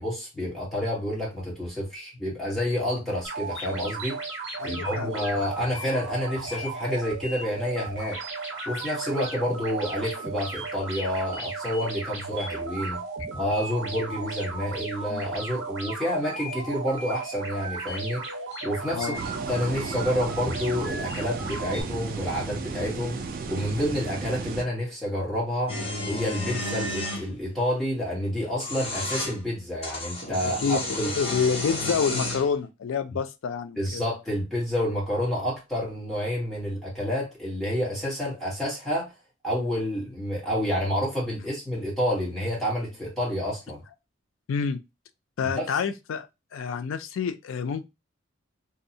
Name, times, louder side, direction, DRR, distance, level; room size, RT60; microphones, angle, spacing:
voice 1, 0.0-4.2 4.6-8.2 8.6-13.0 13.3-18.3 18.6-23.2 23.5-25.8 26.1-31.1 33.8-39.1 39.4-43.8 45.4-45.7, equal, ahead, 1.0 m, -29 dB
sound 1, 3.2-21.8, right 3 dB, 65° right, 1.0 m, -35 dB
voice 2, 4.6-5.2 18.9-19.2 30.4-34.0 44.5-44.8 45.4-46.3 46.5-47.8, left 6 dB, 80° left, 0.3 m, -28 dB
sound 2, 19.1-24.6, right 4 dB, 45° right, 0.3 m, -34 dB
sound 3, 25.7-27.2 28.4-29.3 29.8-32.5, left 1 dB, 30° left, 0.8 m, -31 dB
2.7 x 2.0 x 2.6 m
head